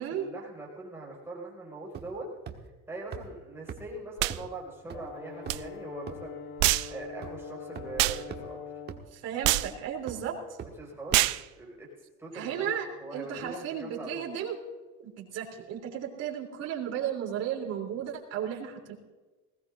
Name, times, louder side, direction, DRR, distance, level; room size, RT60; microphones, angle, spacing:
voice 1, 0.0-2.3 2.9-6.4 6.9-8.6 10.3-10.4 10.8-11.9 12.2-14.2, right 2 dB, 10° right, -4 dB, 5.1 m, -42 dB
sound 1, 1.9-2.2 2.5-2.6 3.1-3.2 3.7-3.8 4.3-4.4 4.9-5.0 5.5-5.7 6.1-6.2 6.6-6.7 7.2-7.3 7.7-7.8 8.3-8.4 8.9-9.0 9.5-9.7 10.1-10.2 10.6-10.7 11.1-11.2, right 9 dB, 35° right, 1.3 m, -39 dB
sound 2, 4.2-4.4 5.5-5.6 6.6-6.9 8.0-8.2 9.4-9.7 11.1-11.4, right 19 dB, 80° right, 0.6 m, -25 dB
Brass instrument, 4.9-9.1, left 6 dB, 75° left, 2.3 m, -43 dB
voice 2, 9.1-10.4 12.3-14.6 15.0-18.9, right 9 dB, 55° right, 0 dB, 3.4 m, -34 dB
20.0 x 17.0 x 2.6 m, 1.2 s
cardioid pair, 160°, 31 cm